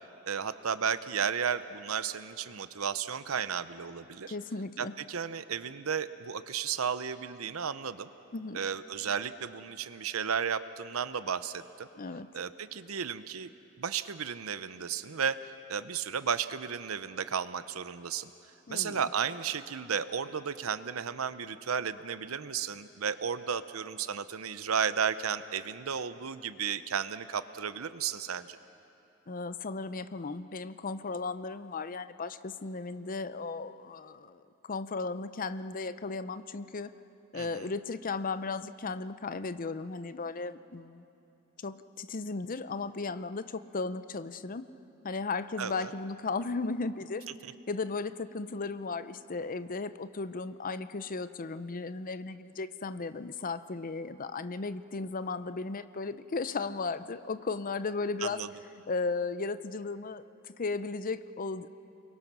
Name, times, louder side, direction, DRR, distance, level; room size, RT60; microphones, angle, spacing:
voice 1, 0.2-4.3 4.8-8.1 8.5-11.9 12.3-13.5 13.8-18.3 18.7-28.6 37.3-37.7 45.6-45.9 58.2-58.5, right 7 dB, 80° right, 13 dB, 0.8 m, -33 dB
voice 2, 4.3-4.9 8.3-8.6 12.0-12.3 18.7-19.0 29.3-36.9 37.3-41.0 41.6-44.7 45.0-47.2 47.7-58.4 58.9-61.7, left 4 dB, 40° left, 13 dB, 0.6 m, -35 dB
29.5 x 22.0 x 6.2 m, 2.8 s
head